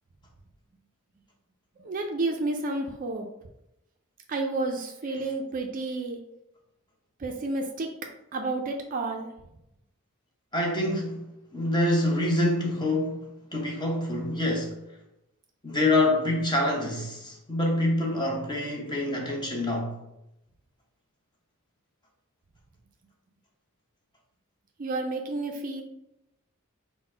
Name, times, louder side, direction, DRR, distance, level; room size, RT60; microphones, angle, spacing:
voice 1, 1.8-3.3 4.3-6.2 7.2-7.9 8.3-9.3 24.8-25.8, right 2 dB, 40° right, 0.4 m, -30 dB
voice 2, 10.5-11.2 11.5-14.8 15.6-20.0, left 1 dB, 20° left, 0.8 m, -26 dB
3.9 x 2.1 x 4.3 m
head